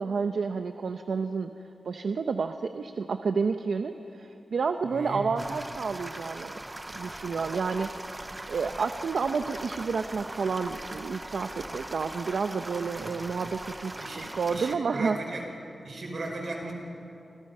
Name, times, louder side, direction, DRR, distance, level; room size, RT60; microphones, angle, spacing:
voice 1, 0.0-1.5 1.8-6.5 6.9-15.2, right 5 dB, 75° right, 7 dB, 0.8 m, -30 dB
voice 2, 4.8-5.3 13.0-13.2 14.0-15.5 15.8-16.7, right 2 dB, 55° right, 1 dB, 5.4 m, -37 dB
sound 1, 5.4-14.7, right 1 dB, 15° right, 0.6 m, -40 dB
29.5 x 26.5 x 5.6 m, 2.7 s
wide cardioid pair, 155°, 0 cm